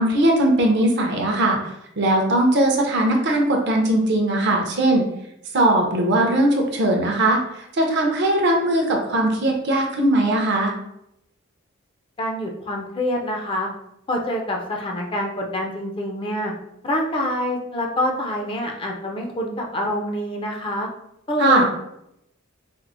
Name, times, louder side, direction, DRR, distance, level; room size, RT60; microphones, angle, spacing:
voice 1, 0.0-5.0 5.5-10.7 21.4-21.6, right 1 dB, 50° right, 1 dB, 0.6 m, -19 dB
voice 2, 12.2-13.7 14.1-16.5 16.8-20.9 21.3-21.6, left 1 dB, 25° left, 1 dB, 0.4 m, -26 dB
4.4 x 2.0 x 2.4 m, 0.79 s
head